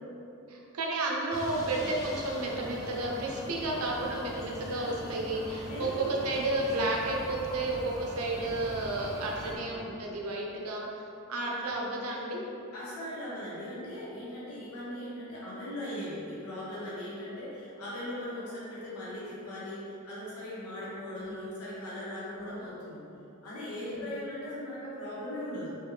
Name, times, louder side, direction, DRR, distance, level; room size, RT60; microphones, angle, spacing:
voice 1, 0.5-10.9 11.3-12.4 21.1-21.3 22.3-22.5 23.8-24.0, right 2 dB, 70° right, -2 dB, 0.6 m, -32 dB
sound 1, 1.3-9.5, equal, 15° left, 0.5 m, -42 dB
voice 2, 5.6-6.2 9.4-9.9 11.4-11.7 12.7-23.0 23.4-25.8, left 1 dB, 70° left, -8 dB, 1.0 m, -39 dB
3.3 x 3.0 x 3.2 m, 2.8 s
head